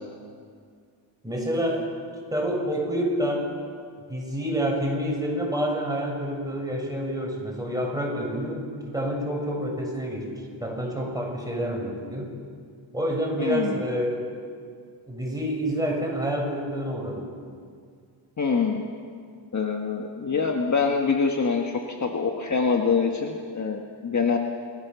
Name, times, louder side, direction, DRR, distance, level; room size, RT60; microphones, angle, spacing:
voice 1, 1.2-1.9 2.3-3.5 4.1-12.3 12.9-14.2 15.1-17.2, equal, 10° right, -1 dB, 6.8 m, -28 dB
voice 2, 13.4-13.8 18.4-18.8 19.5-24.4, left 5 dB, 35° left, 2 dB, 1.6 m, -25 dB
29.0 x 14.5 x 7.0 m, 2.1 s
cardioid pair, 85°, 47 cm